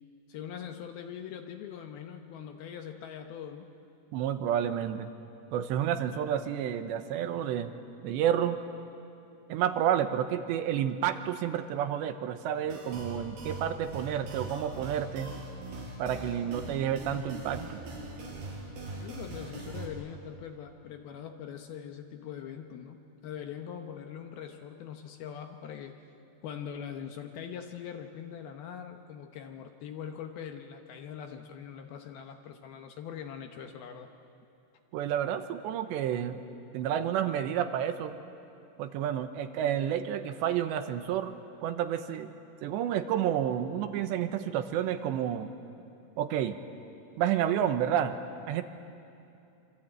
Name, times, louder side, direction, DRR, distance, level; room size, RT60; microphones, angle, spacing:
voice 1, 0.3-3.7 19.0-26.0 26.4-34.1 47.9-48.0, left 8 dB, 70° left, 5 dB, 2.6 m, -42 dB
voice 2, 4.1-5.1 5.5-7.7 8.0-8.6 9.5-15.3 16.0-17.8 34.9-36.4 36.7-38.1 38.8-41.4 41.6-42.3 42.6-45.5 46.2-46.6 47.2-48.1 48.5-48.6, right 10 dB, 75° right, 9 dB, 3.0 m, -30 dB
sound 1, 12.7-19.9, right 2 dB, 60° right, 6.3 m, -41 dB
26.0 x 25.5 x 8.9 m, 2.7 s
omnidirectional pair, 5.4 m